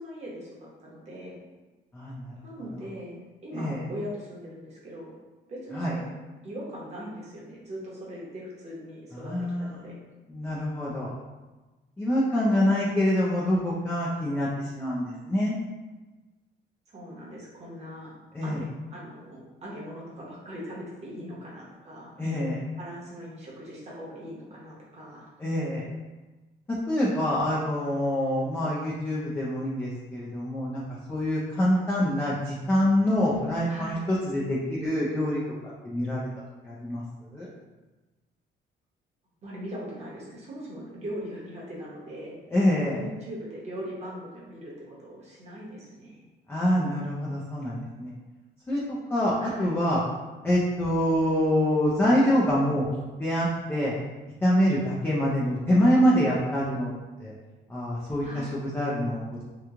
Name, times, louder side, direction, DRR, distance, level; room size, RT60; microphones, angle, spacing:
voice 1, 0.0-1.4 2.4-5.2 5.5-6.1 6.4-9.9 16.9-18.1 18.4-18.6 18.9-22.1 22.8-25.3 33.7-34.0 39.4-42.4 42.9-46.2 49.4-49.8 58.2-58.5, equal, 35° right, -5 dB, 1.0 m, -40 dB
voice 2, 1.9-2.2 3.5-3.8 5.7-5.9 9.1-9.9 10.3-11.1 12.0-15.5 18.3-18.6 22.2-22.6 25.4-25.8 26.7-30.8 31.1-35.6 35.8-36.2 36.6-37.0 37.3-37.5 42.5-43.0 46.5-48.1 48.7-49.3 49.6-50.0 50.4-52.9 53.2-53.9 54.4-56.9 57.2-57.3 57.7-58.3 58.7-59.4, equal, 10° left, -6 dB, 0.4 m, -25 dB
3.0 x 2.3 x 3.5 m, 1.2 s
cardioid pair, 150°, 19 cm